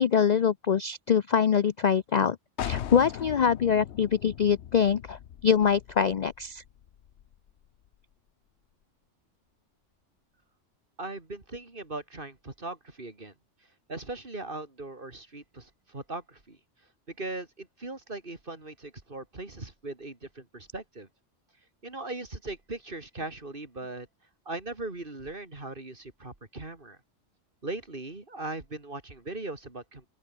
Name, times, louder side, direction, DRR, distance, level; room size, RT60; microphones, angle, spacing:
voice 1, 0.0-2.4 2.6-6.6, left 7 dB, 50° left, 0.5 m, -24 dB
sound 1, 2.6-8.1, left 10 dB, 65° left, 1.0 m, -40 dB
voice 2, 11.0-13.3 13.9-16.6 17.1-21.1 21.8-24.1 24.5-27.0 27.6-30.0, right 2 dB, 45° right, 3.3 m, -39 dB
open air
omnidirectional pair, 1.3 m